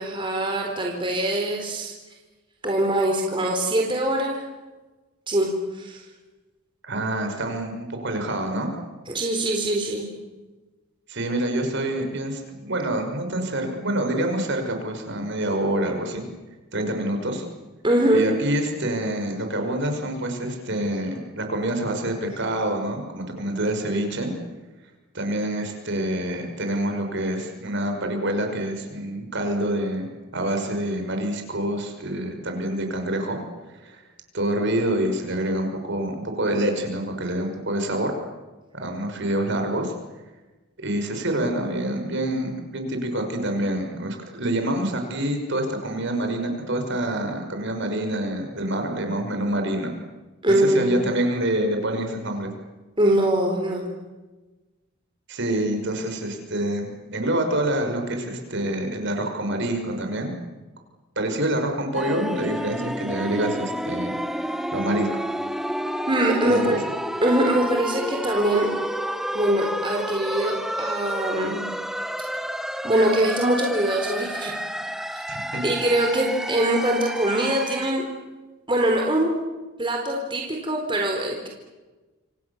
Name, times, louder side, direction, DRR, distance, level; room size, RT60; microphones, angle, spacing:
voice 1, 0.0-1.9 2.6-4.4 5.3-6.0 9.1-10.0 17.8-18.3 50.4-50.9 53.0-53.9 66.1-66.8 67.2-68.7 69.3-71.6 72.8-74.5 75.6-78.0 78.7-79.3 79.8-81.5, right 1 dB, 25° right, 1 dB, 4.1 m, -23 dB
voice 2, 6.8-8.7 11.1-16.2 16.7-17.4 18.1-24.3 25.1-30.1 30.3-33.4 33.8-34.0 34.3-38.1 38.7-39.9 40.8-49.9 50.6-52.5 55.3-60.3 61.2-65.2 66.4-66.8 75.3-75.6, right 1 dB, 55° right, 5 dB, 6.1 m, -26 dB
sound 1, 61.9-77.9, equal, ahead, 1.1 m, -30 dB
29.0 x 26.5 x 7.3 m, 1.2 s
head